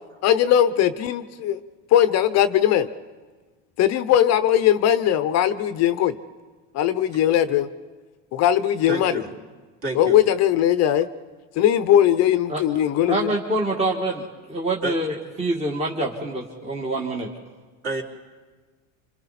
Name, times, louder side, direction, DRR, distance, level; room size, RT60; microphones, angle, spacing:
voice 1, 0.2-1.6 1.9-2.9 3.8-6.1 6.7-7.7 8.3-9.2 9.9-11.1 11.6-13.3, left 11 dB, 45° left, 12 dB, 0.8 m, -19 dB
voice 2, 8.9-9.3 9.8-10.2 14.8-14.9 17.8-18.0, right 2 dB, 40° right, -2 dB, 4.0 m, -29 dB
voice 3, 13.1-14.2 14.5-17.3, right 2 dB, 15° right, -1 dB, 1.8 m, -26 dB
28.5 x 26.0 x 4.2 m, 1.4 s
supercardioid pair, 120°, 36 cm